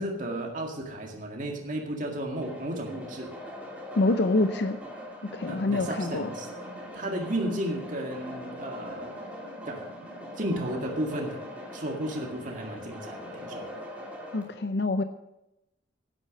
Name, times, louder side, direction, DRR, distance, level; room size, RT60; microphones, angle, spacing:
voice 1, 0.0-3.3 5.5-6.5 6.9-9.2 9.7-9.8 10.4-11.4 11.7-13.7, right 1 dB, 45° right, 1 dB, 2.0 m, -33 dB
sound 1, 2.4-14.4, equal, 10° right, 3.0 m, -42 dB
voice 2, 4.0-4.8 5.3-6.3 7.5-7.6 14.3-15.0, left 2 dB, 60° left, 9 dB, 0.6 m, -26 dB
sound 2, 4.1-13.8, left 1 dB, 85° right, 2.9 m, -51 dB
11.5 x 9.8 x 6.4 m, 0.90 s
head